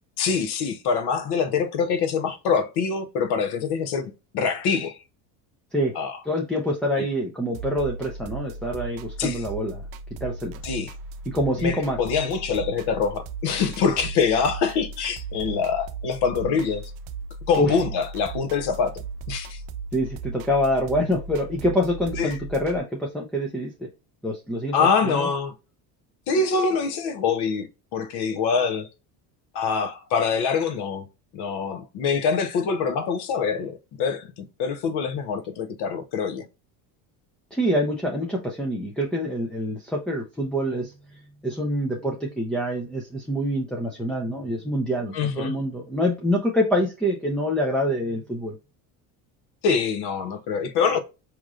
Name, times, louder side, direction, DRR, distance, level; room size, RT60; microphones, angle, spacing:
voice 1, 0.2-5.0 5.9-6.2 7.0-7.1 9.2-9.5 10.6-10.9 11.6-16.9 17.5-18.9 19.3-19.6 22.2-22.3 24.7-25.5 26.3-28.9 29.5-31.1 31.3-34.3 34.6-36.5 45.1-45.6 49.6-51.0, left 5 dB, 60° left, 0.9 m, -25 dB
voice 2, 6.3-9.8 10.2-10.6 11.3-12.0 17.6-17.8 19.9-23.9 24.2-24.8 25.0-25.3 37.5-40.9 41.4-48.5, equal, ahead, 0.4 m, -26 dB
sound 1, 7.5-22.8, right 4 dB, 80° right, 0.6 m, -37 dB
5.0 x 3.0 x 2.4 m
cardioid pair, 135°, 44 cm